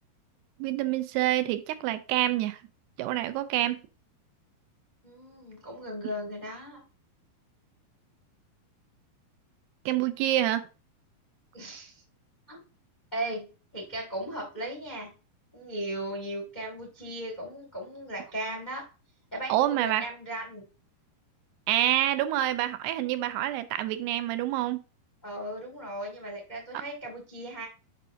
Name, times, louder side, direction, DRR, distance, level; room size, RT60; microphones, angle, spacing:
voice 1, 0.6-2.6 3.0-3.8 9.9-10.7 19.5-20.0 21.7-24.8, right 13 dB, 90° right, 2.7 m, -27 dB
voice 2, 5.0-6.8 11.5-12.0 12.5-12.6 13.1-13.5 13.7-15.1 15.5-18.8 19.3-20.7 25.2-27.6, right 1 dB, 75° left, 0.4 m, -37 dB
7.4 x 5.6 x 2.6 m
omnidirectional pair, 4.6 m